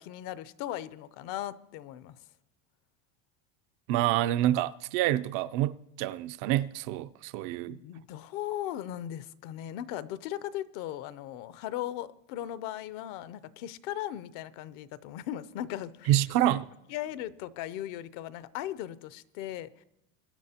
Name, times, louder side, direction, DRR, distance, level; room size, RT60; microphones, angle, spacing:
voice 1, 0.0-2.2 7.7-16.1 16.5-16.6 16.9-19.8, left 12 dB, 60° left, 0.6 m, -38 dB
voice 2, 3.9-7.8 16.1-16.6, right 13 dB, 55° right, 0.5 m, -27 dB
22.0 x 10.0 x 2.8 m
supercardioid pair, 135°, 36 cm